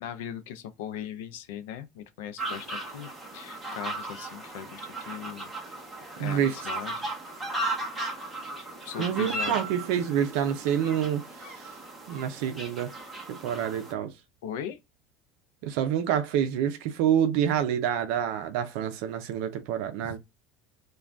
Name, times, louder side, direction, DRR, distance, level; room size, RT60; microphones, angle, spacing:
voice 1, 0.0-5.5 6.2-7.1 8.8-9.6 14.4-14.8 20.0-20.2, left 9 dB, 90° left, 0.4 m, -39 dB
sound 1, 2.4-13.9, right 2 dB, 5° right, 0.8 m, -36 dB
voice 2, 6.2-6.6 9.0-11.7 12.1-12.9 13.3-14.1 15.6-20.2, right 9 dB, 65° right, 0.4 m, -27 dB
2.5 x 2.2 x 3.3 m
cardioid pair, 165°, 0 cm